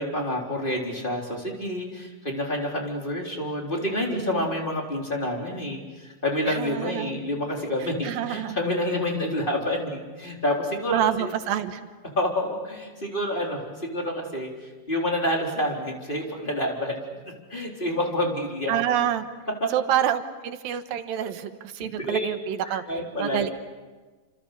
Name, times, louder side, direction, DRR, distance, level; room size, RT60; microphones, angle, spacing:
voice 1, 0.0-11.3 12.2-14.5 14.9-17.2 17.5-18.8 19.6-19.7 21.2-21.3 21.8-22.3 22.7-23.5, left 1 dB, 15° left, 0 dB, 3.8 m, -28 dB
voice 2, 4.0-4.5 6.5-7.2 8.0-8.6 10.9-11.8 18.7-19.2 19.7-22.8 23.2-23.5, right 10 dB, 85° right, 9 dB, 3.0 m, -27 dB
29.0 x 27.0 x 6.8 m, 1.3 s
omnidirectional pair, 4.0 m